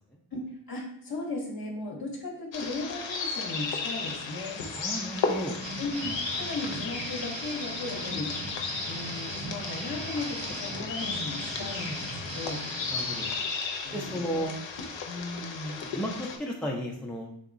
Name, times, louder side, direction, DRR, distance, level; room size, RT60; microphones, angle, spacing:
voice 1, 0.3-4.6 5.8-8.3 8.8-12.6 13.7-14.5 15.1-15.8, left 2 dB, 55° left, -2 dB, 0.7 m, -36 dB
sound 1, 2.5-16.4, left 4 dB, 90° left, 0.6 m, -35 dB
voice 2, 4.8-5.6 12.9-13.3 13.9-14.5 15.8-17.3, equal, ahead, -1 dB, 0.4 m, -33 dB
sound 2, 5.6-13.3, right 1 dB, 75° right, 0.9 m, -38 dB
3.7 x 2.9 x 2.5 m, 0.74 s
cardioid pair, 50°, 43 cm